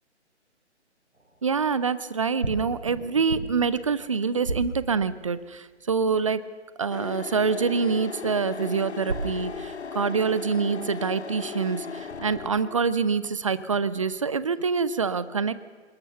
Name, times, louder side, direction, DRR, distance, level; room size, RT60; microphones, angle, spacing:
sound 1, 1.1-1.8 2.4-5.6 8.2-9.7, right 2 dB, 75° right, 3.6 m, -36 dB
voice 1, 1.4-6.5 6.8-15.5, right 5 dB, 30° right, 16 dB, 0.6 m, -26 dB
sound 2, 6.9-12.8, left 5 dB, 70° left, 0.9 m, -37 dB
21.5 x 20.0 x 6.7 m, 1.5 s
figure-of-eight pair, 135°, 35 cm